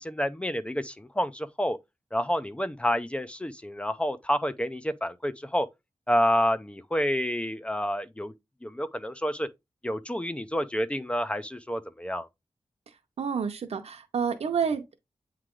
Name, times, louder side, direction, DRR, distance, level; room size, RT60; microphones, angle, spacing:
voice 1, 0.0-1.8 2.1-5.7 6.1-8.3 8.6-9.5 9.8-12.3, equal, 10° left, 0.5 m, -29 dB
voice 2, 13.2-15.0, right 6 dB, 80° right, 0.7 m, -29 dB
8.6 x 3.2 x 3.7 m
wide cardioid pair, 125°, 11 cm